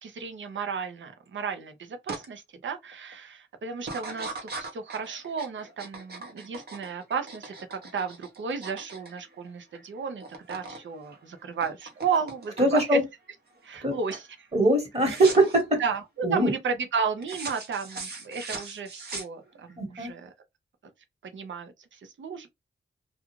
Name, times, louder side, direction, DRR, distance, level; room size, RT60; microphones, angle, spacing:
voice 1, 0.0-13.0 13.6-14.5 15.0-15.2 15.8-20.3 21.2-22.5, right 5 dB, 75° right, 0.7 m, -33 dB
sound 1, 2.1-2.3 2.7-3.1 3.8-9.9 10.1-10.8 11.1-13.1 13.6-13.9 14.1-14.3 15.0-15.6 17.2-19.7, right 3 dB, 55° right, 1.0 m, -40 dB
voice 2, 12.6-13.0 13.8-13.9 14.5-15.8 16.2-16.5 19.8-20.1, right 1 dB, 30° right, 1.3 m, -22 dB
2.4 x 2.3 x 3.0 m
cardioid pair, 70°, 20 cm